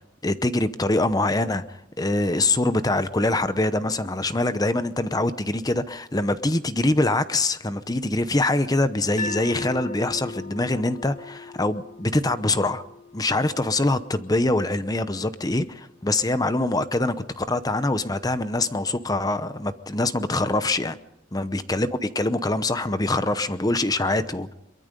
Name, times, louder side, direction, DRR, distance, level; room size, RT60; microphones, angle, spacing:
voice 1, 0.0-12.8 13.1-21.0 21.3-24.5, left 2 dB, 20° left, 12 dB, 0.8 m, -24 dB
sound 1, 9.2-15.3, left 4 dB, 35° left, 1.8 m, -39 dB
23.0 x 23.0 x 5.3 m, 0.80 s
head